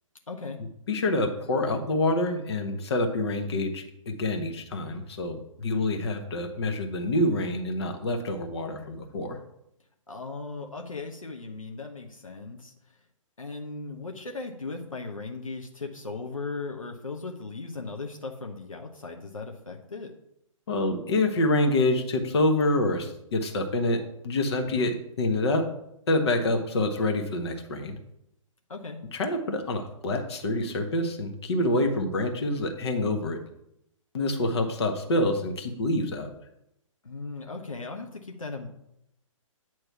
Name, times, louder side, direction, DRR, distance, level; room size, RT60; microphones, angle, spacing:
voice 1, 0.3-0.6 5.6-5.9 10.1-12.7 13.4-20.1 24.7-24.9 28.7-29.0 37.0-38.7, left 3 dB, 75° left, 2 dB, 0.9 m, -37 dB
voice 2, 0.9-9.4 20.7-25.6 26.1-28.0 29.1-33.4 34.1-36.3, left 1 dB, 50° left, 4 dB, 1.1 m, -27 dB
8.9 x 3.1 x 5.8 m, 0.81 s
figure-of-eight pair, 125°, 17 cm